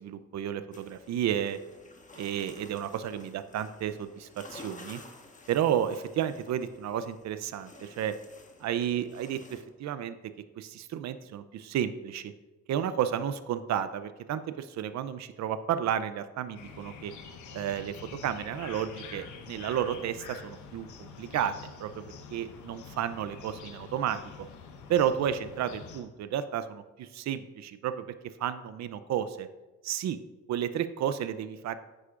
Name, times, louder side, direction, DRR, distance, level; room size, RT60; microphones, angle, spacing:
voice 1, 0.0-1.6 2.2-5.0 5.5-8.1 8.6-10.1 10.6-12.3 12.7-17.1 17.5-18.0 18.2-22.0 22.3-24.5 24.9-29.5 29.8-30.2 30.5-31.8, right 9 dB, 65° right, 12 dB, 0.6 m, -32 dB
sound 1, 0.7-9.6, left 2 dB, 25° left, 1.4 m, -52 dB
sound 2, 16.6-26.0, left 5 dB, 75° left, 1.1 m, -46 dB
10.0 x 8.2 x 2.5 m, 1.1 s
cardioid pair, 90°, 30 cm